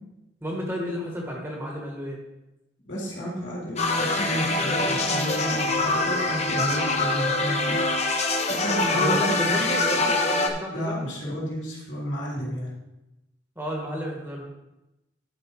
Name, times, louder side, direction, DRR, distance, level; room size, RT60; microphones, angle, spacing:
voice 1, 0.4-2.2 8.9-11.1 13.5-14.4, equal, 10° right, -1 dB, 1.4 m, -31 dB
voice 2, 2.9-8.0 8.6-9.8 10.7-12.7, equal, 70° left, -5 dB, 3.5 m, -31 dB
sound 1, 3.8-10.5, left 2 dB, 35° left, 0.9 m, -24 dB
11.5 x 4.8 x 4.7 m, 0.95 s
head